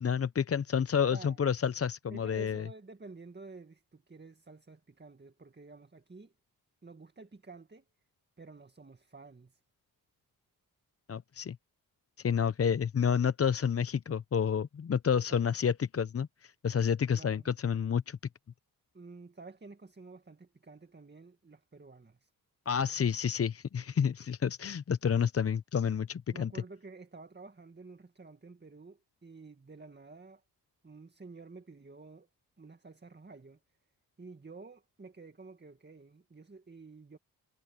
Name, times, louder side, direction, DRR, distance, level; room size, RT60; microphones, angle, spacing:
voice 1, 0.0-2.6 11.1-11.6 12.2-18.2 22.7-26.5, left 7 dB, 40° left, 0.7 m, -29 dB
voice 2, 1.1-1.4 2.1-6.3 6.8-7.9 8.4-9.6 15.3-15.4 17.1-17.5 18.9-22.3 26.3-30.4 30.8-32.3 32.6-33.6 34.2-37.2, right 3 dB, 25° right, 2.0 m, -51 dB
cardioid pair, 55°, 38 cm